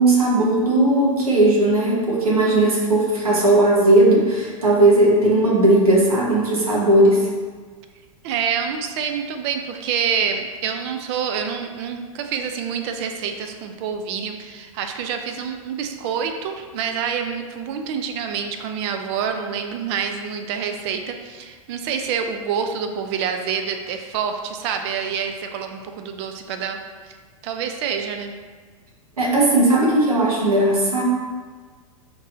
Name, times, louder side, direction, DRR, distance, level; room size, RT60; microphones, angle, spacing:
voice 1, 0.0-7.3 29.2-31.0, right 1 dB, 90° right, -4 dB, 1.2 m, -17 dB
voice 2, 8.2-26.8 27.1-27.2 27.4-28.3, right 7 dB, 50° right, 6 dB, 0.4 m, -27 dB
5.1 x 3.0 x 2.6 m, 1.5 s
hypercardioid pair, 100°, 18 cm